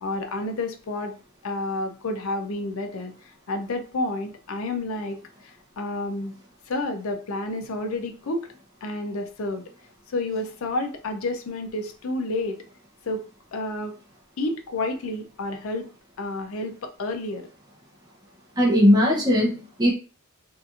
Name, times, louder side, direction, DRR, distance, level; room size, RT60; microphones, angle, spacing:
voice 1, 0.0-1.1 1.4-5.2 5.4-6.3 6.7-8.5 8.8-9.6 10.1-12.6 13.0-14.0 14.4-15.9 16.2-17.5, left 2 dB, 70° left, 6 dB, 0.5 m, -30 dB
voice 2, 18.6-19.9, equal, 20° right, -3 dB, 0.6 m, -19 dB
2.8 x 2.4 x 2.4 m, 0.36 s
head